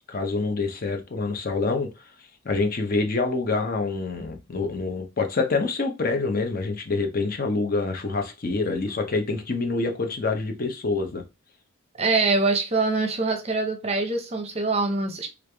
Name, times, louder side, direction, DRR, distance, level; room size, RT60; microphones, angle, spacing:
voice 1, 0.1-2.1 2.4-11.2, left 3 dB, 40° left, 0.6 m, -26 dB
voice 2, 12.0-15.3, right 3 dB, 30° right, 0.6 m, -24 dB
3.2 x 2.4 x 3.3 m
head